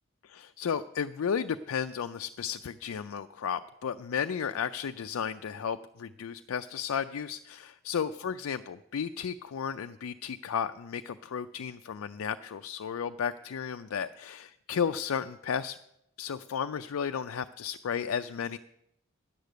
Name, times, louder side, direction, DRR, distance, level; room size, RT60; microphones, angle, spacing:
voice 1, 0.2-15.8 16.2-18.6, left 7 dB, 90° left, 8 dB, 0.4 m, -33 dB
10.5 x 6.7 x 9.1 m, 0.80 s
head